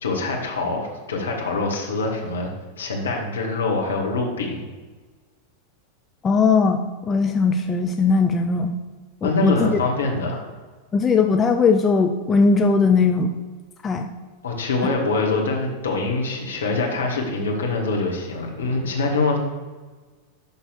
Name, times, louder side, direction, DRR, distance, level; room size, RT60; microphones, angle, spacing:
voice 1, 0.0-4.7 9.2-10.5 14.4-19.4, left 3 dB, 70° left, 0 dB, 1.9 m, -24 dB
voice 2, 6.2-8.7 9.2-9.8 10.9-13.3 13.8-14.1, left 4 dB, 20° left, 4 dB, 0.6 m, -19 dB
11.0 x 3.9 x 6.6 m, 1.4 s
figure-of-eight pair, 90°, 0 cm